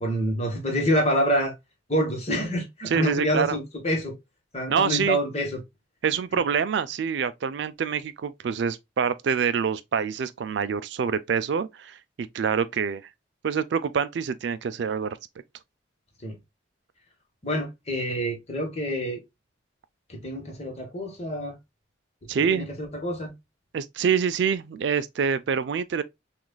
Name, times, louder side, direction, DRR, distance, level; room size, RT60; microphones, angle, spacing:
voice 1, 0.0-1.5 1.9-4.2 4.5-5.6 16.2-16.3 17.4-19.2 20.1-21.6 22.4-23.3, equal, 35° left, 1.3 m, -27 dB
voice 2, 2.9-3.6 4.7-5.2 6.0-13.0 13.4-15.2 22.3-22.7 23.7-26.0, right 6 dB, 65° right, 0.4 m, -26 dB
6.0 x 2.5 x 2.2 m
head